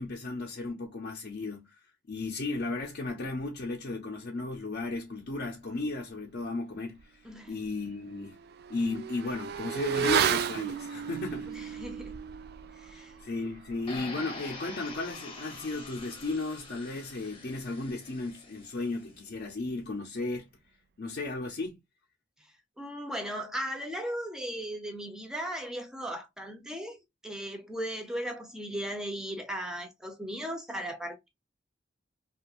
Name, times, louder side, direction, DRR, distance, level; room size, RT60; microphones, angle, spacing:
voice 1, 0.0-1.8 2.1-7.2 7.5-8.4 8.7-11.8 12.9-20.5 21.0-21.8, left 3 dB, 55° left, 0.5 m, -35 dB
Motorcycle / Accelerating revving vroom, 7.0-7.1 7.5-17.5 17.7-17.9, right 8 dB, 55° right, 0.3 m, -35 dB
voice 2, 7.2-7.6 11.5-12.2 12.7-13.1 22.8-31.3, equal, 5° right, 0.5 m, -37 dB
sound 1, 13.9-18.9, left 3 dB, 30° left, 0.8 m, -45 dB
2.5 x 2.4 x 2.9 m
head